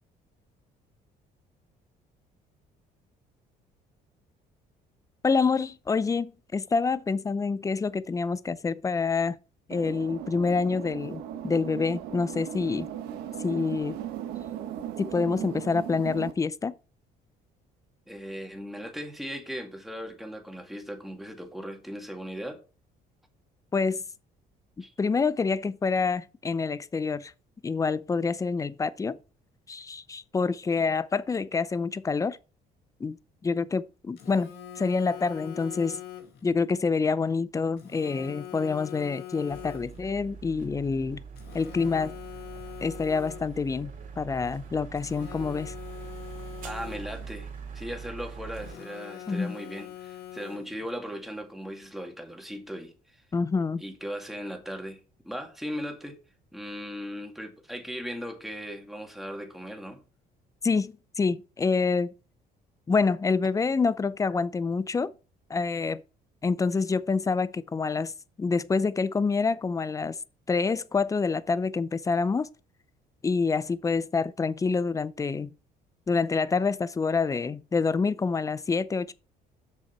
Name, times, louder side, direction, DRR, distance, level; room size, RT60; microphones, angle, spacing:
voice 1, 5.2-9.4 9.7-12.9 13.4-14.0 15.0-16.7 23.7-24.0 25.0-27.3 27.6-29.2 29.7-32.4 33.0-33.2 33.4-36.0 36.4-41.2 41.5-42.2 42.8-45.7 49.3-49.6 53.3-53.8 60.6-62.1 62.9-65.1 65.5-66.0 66.4-68.1 68.4-70.2 70.5-72.5 73.2-75.5 76.1-79.1, left 4 dB, 20° left, 0.5 m, -27 dB
sound 1, 9.7-16.3, right 10 dB, 90° right, 1.1 m, -37 dB
voice 2, 18.1-22.6 24.8-24.9 46.6-47.5 47.7-53.2 53.8-56.2 56.5-60.0, equal, ahead, 2.1 m, -38 dB
Telephone, 34.2-36.5 37.8-40.1 41.4-43.7 44.9-47.3 48.5-50.9, left 11 dB, 70° left, 2.0 m, -43 dB
sound 2, 39.5-48.7, right 6 dB, 55° right, 2.8 m, -43 dB
7.4 x 6.5 x 4.5 m
cardioid pair, 110°, 17 cm